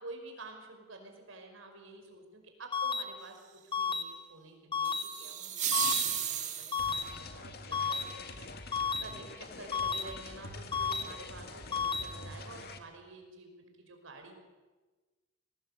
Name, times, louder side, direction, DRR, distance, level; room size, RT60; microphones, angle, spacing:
voice 1, 0.0-5.7 6.0-14.3, right 2 dB, 85° right, 4 dB, 5.4 m, -50 dB
sound 1, 2.7-3.0 3.7-4.0 4.7-5.0 5.7-6.0 6.7-7.0 7.7-8.0 8.7-9.0 9.7-10.0 10.7-11.0 11.7-12.0, left 6 dB, 25° left, 1.3 m, -31 dB
sound 2, 4.8-7.0, right 9 dB, 40° right, 2.1 m, -33 dB
sound 3, 6.8-12.8, left 2 dB, 55° left, 2.0 m, -46 dB
23.0 x 19.5 x 8.3 m, 1.3 s
head